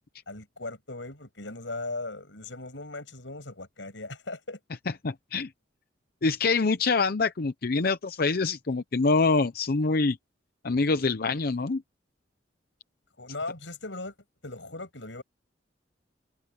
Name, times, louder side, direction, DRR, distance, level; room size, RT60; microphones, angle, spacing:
voice 1, 0.3-4.6 13.2-14.1 14.4-15.2, left 2 dB, 85° left, 6.9 m, -38 dB
voice 2, 5.0-5.5 6.2-10.2 10.6-11.8, left 3 dB, 55° left, 0.6 m, -25 dB
head